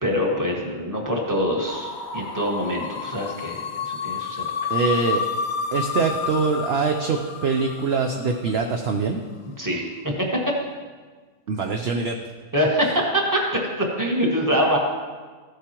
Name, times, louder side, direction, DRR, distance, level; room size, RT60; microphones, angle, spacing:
voice 1, 0.0-4.7 9.6-9.9 12.5-14.8, equal, 15° right, -2 dB, 1.5 m, -24 dB
sound 1, 1.7-8.6, left 6 dB, 55° left, 0.9 m, -30 dB
voice 2, 4.7-5.2 5.7-9.2 11.5-12.2, right 4 dB, 60° right, 3 dB, 0.8 m, -23 dB
15.0 x 8.1 x 3.0 m, 1.4 s
omnidirectional pair, 1.4 m